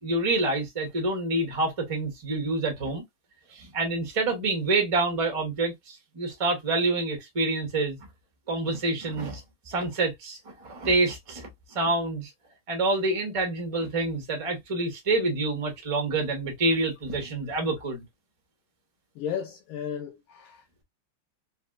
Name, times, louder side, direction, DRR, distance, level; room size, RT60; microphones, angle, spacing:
voice 1, 0.0-3.0 3.5-8.0 8.5-12.3 12.7-18.0, right 2 dB, 45° right, 0.4 m, -27 dB
voice 2, 19.2-20.8, left 8 dB, 85° left, 1.5 m, -35 dB
4.0 x 2.1 x 2.4 m
omnidirectional pair, 2.3 m